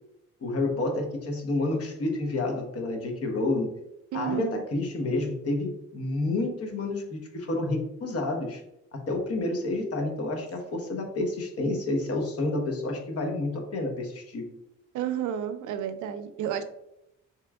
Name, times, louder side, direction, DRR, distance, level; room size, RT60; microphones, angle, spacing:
voice 1, 0.4-3.7 4.1-8.6 8.9-14.5, left 2 dB, 50° left, 3 dB, 0.9 m, -29 dB
voice 2, 4.1-4.6 14.9-16.6, right 10 dB, 80° right, 9 dB, 0.5 m, -31 dB
3.5 x 2.9 x 2.3 m, 0.84 s
cardioid pair, 90°, 30 cm